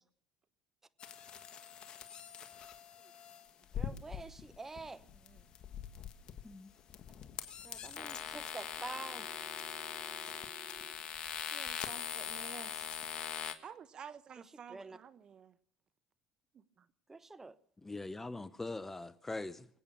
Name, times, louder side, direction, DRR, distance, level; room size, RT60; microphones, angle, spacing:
sound 1, 1.0-13.5, left 8 dB, 45° left, 1.4 m, -42 dB
voice 1, 3.7-5.1 7.6-9.3 14.7-15.0 17.1-17.6, right 3 dB, 15° right, 0.9 m, -47 dB
voice 2, 5.1-5.4 7.2-7.4 11.4-12.7 13.6-15.6 16.5-16.9, right 7 dB, 45° right, 1.0 m, -52 dB
Telephone, 8.9-10.9, right 3 dB, 60° right, 5.8 m, -57 dB
voice 3, 17.8-19.7, left 2 dB, 15° left, 0.7 m, -42 dB
24.0 x 8.5 x 7.0 m
supercardioid pair, 85°, 2 cm